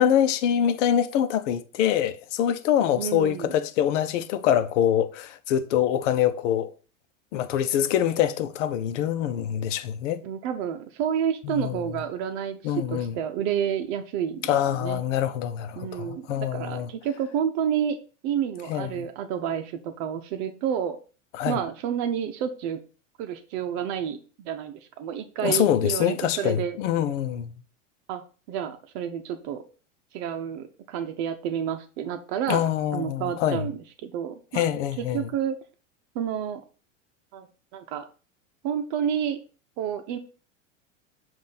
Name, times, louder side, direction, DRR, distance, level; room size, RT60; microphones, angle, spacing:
voice 1, 0.0-6.7 7.3-10.2 11.4-11.8 12.6-13.2 14.4-16.9 18.7-19.1 21.3-21.6 25.4-27.5 32.5-33.7 34.5-35.3, left 10 dB, 65° left, 0.8 m, -25 dB
voice 2, 3.0-3.6 10.2-15.0 15.8-18.0 18.2-21.0 21.5-22.8 23.2-26.8 28.1-28.2 28.5-29.6 30.1-34.7 35.1-35.5 36.1-36.6 37.3-37.5 37.7-38.1 38.6-39.4 39.8-40.2, right 9 dB, 55° right, 0.8 m, -30 dB
7.2 x 2.7 x 5.8 m
hypercardioid pair, 100°, 39 cm